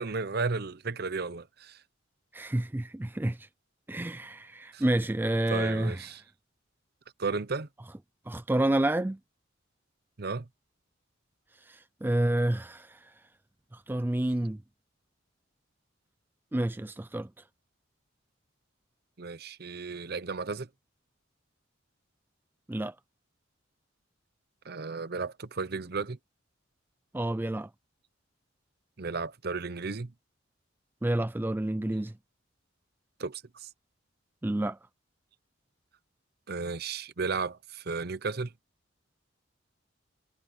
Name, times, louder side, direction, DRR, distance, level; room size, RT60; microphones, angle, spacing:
voice 1, 0.0-1.8 4.7-4.8 5.5-6.2 7.2-7.7 10.2-10.4 19.2-20.7 24.6-26.2 29.0-30.1 33.2-33.7 36.5-38.5, right 4 dB, 50° right, 0.8 m, -34 dB
voice 2, 2.3-3.5 3.9-6.0 8.3-9.2 11.7-13.0 13.7-14.6 16.5-17.3 22.7-22.9 27.1-27.7 31.0-32.1 34.4-34.8, right 1 dB, 10° right, 0.3 m, -29 dB
head